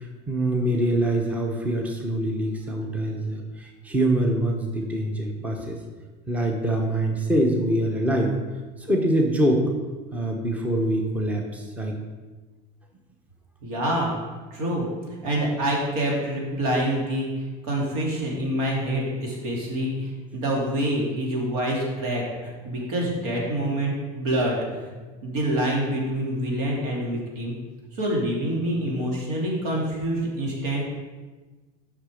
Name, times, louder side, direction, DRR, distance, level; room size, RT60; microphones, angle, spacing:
voice 1, 0.0-5.8 6.3-8.3 8.8-9.7 10.1-12.0, right 1 dB, 10° right, 2 dB, 0.8 m, -24 dB
voice 2, 13.6-14.1 14.5-14.9 15.2-24.6 25.2-27.5 27.9-30.8, right 1 dB, 90° right, -2 dB, 2.7 m, -26 dB
8.0 x 5.7 x 5.1 m, 1.3 s
cardioid pair, 170°, 18 cm